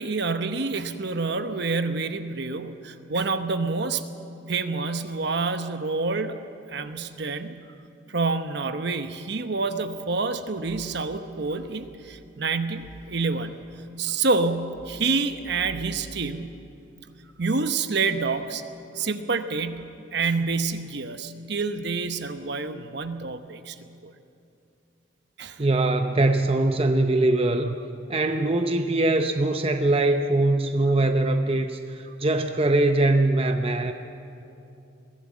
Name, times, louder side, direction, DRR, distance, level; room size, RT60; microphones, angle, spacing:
voice 1, 0.0-4.1 4.5-6.4 6.7-7.6 8.1-13.6 14.0-16.6 17.4-18.6 18.9-23.8 24.0-24.1 25.4-25.6, right 4 dB, 60° right, 9 dB, 1.0 m, -28 dB
voice 2, 25.6-27.8 28.1-33.9, right 2 dB, 30° right, 6 dB, 0.7 m, -22 dB
22.5 x 16.0 x 7.4 m, 2.7 s
head